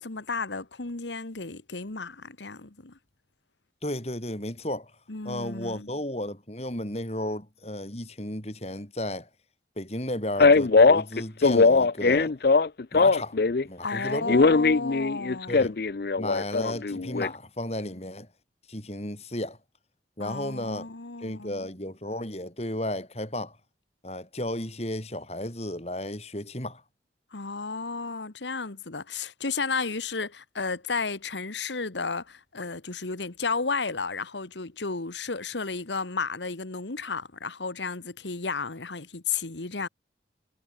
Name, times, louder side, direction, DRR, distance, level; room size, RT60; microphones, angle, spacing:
voice 1, 0.0-3.0 5.1-5.9 13.8-15.7 20.2-21.7 27.3-39.9, left 4 dB, 85° left, 1.6 m, -33 dB
voice 2, 3.8-4.9 5.2-9.3 9.8-12.3 12.9-13.4 13.6-14.4 15.5-15.8 16.2-18.3 18.7-19.6 20.2-20.9 21.2-23.6 24.0-26.8, left 1 dB, 35° left, 6.7 m, -33 dB
Male speech man speaking, 10.4-13.6 13.9-17.3, left 4 dB, 60° left, 0.6 m, -20 dB
head